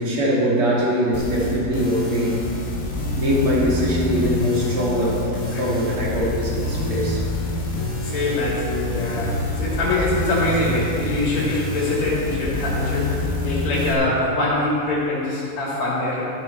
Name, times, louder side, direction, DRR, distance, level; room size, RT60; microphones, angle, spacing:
voice 1, 0.0-2.4 3.2-7.2, equal, 45° right, -5 dB, 2.6 m, -22 dB
sound 1, 1.1-13.9, left 2 dB, 90° left, 0.7 m, -26 dB
voice 2, 8.0-16.3, left 2 dB, 55° left, -6 dB, 3.5 m, -24 dB
12.5 x 9.4 x 4.3 m, 2.7 s
omnidirectional pair, 3.9 m